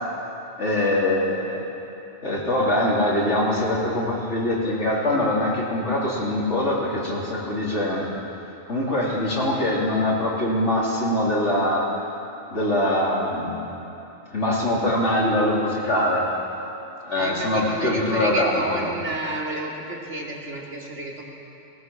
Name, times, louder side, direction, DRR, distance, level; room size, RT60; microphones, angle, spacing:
voice 1, 0.6-1.6 2.2-8.0 8.7-11.9 12.5-13.6 14.3-16.3 17.0-18.9, left 1 dB, 80° left, -5 dB, 4.0 m, -23 dB
voice 2, 17.1-21.2, right 1 dB, 85° right, -3 dB, 3.2 m, -30 dB
19.0 x 18.5 x 7.3 m, 3.0 s
omnidirectional pair, 1.2 m